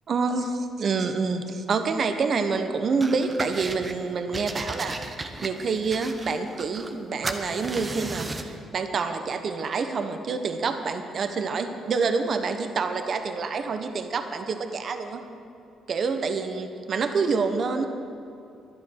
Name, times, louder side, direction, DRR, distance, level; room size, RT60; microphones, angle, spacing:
voice 1, 0.1-15.2 15.9-17.9, right 4 dB, 50° right, 7 dB, 1.0 m, -27 dB
sound 1, 3.0-4.0 4.3-7.0 7.2-8.6, right 2 dB, 25° right, 1.0 m, -35 dB
11.5 x 10.5 x 6.5 m, 2.7 s
cardioid pair, 90°, 0 cm